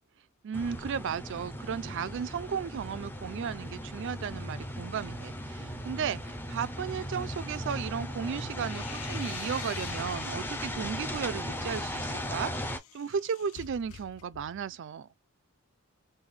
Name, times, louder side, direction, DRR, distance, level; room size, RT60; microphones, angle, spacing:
voice 1, 0.4-15.1, right 7 dB, 55° right, 0.4 m, -35 dB
sound 1, 0.5-12.8, equal, 10° left, 0.6 m, -37 dB
sound 2, 8.3-10.9 11.4-14.7, left 11 dB, 70° left, 0.4 m, -47 dB
3.3 x 2.1 x 3.6 m
head